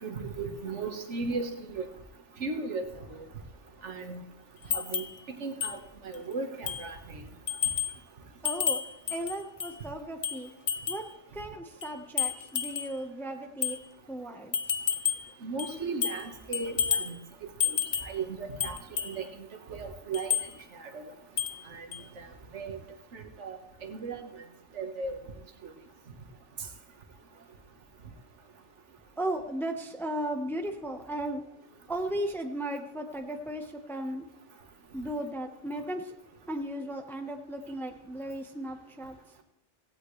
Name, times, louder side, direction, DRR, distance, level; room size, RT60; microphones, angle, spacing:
voice 1, 0.0-1.9 2.4-3.2 3.8-4.2 4.7-7.3 15.4-17.8 18.0-19.3 19.7-20.4 20.7-21.1 21.7-21.9 22.2-22.3 22.5-22.8 23.1-24.2 24.7-25.2 25.6-25.7, right 4 dB, 65° right, 5 dB, 1.7 m, -36 dB
sound 1, 2.8-4.8, left 2 dB, 25° left, 7.0 m, -58 dB
sound 2, 4.7-5.2 5.6-5.8 6.1-6.2 6.7-6.9 7.5-8.0 8.4-9.8 10.2-11.1 11.8-13.0 13.6-13.8 14.5-15.3 15.6-16.3 16.5-17.1 17.6-18.2 18.6-19.2 20.1-20.5 21.4-21.6 21.9-22.0, left 7 dB, 40° left, 0.6 m, -31 dB
voice 2, 8.4-8.8 9.1-10.5 10.9-11.0 11.3-13.8 14.1-14.8 17.3-17.4 22.0-22.1 29.2-34.3 34.9-36.2 36.5-39.1, right 1 dB, ahead, 4 dB, 1.0 m, -36 dB
17.0 x 16.5 x 3.2 m, 0.87 s
omnidirectional pair, 1.3 m